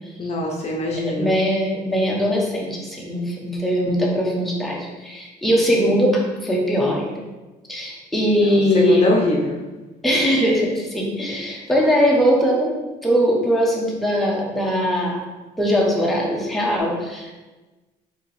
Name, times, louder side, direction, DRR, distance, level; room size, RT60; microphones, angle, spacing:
voice 1, 0.2-1.3 8.4-8.5 8.7-9.6, left 2 dB, 40° left, -2 dB, 0.6 m, -23 dB
voice 2, 1.0-7.2 7.7-9.1 10.0-12.7 13.0-15.2 15.6-17.3, equal, ahead, -3 dB, 0.8 m, -20 dB
4.5 x 2.8 x 3.3 m, 1.2 s
cardioid pair, 110°, 17 cm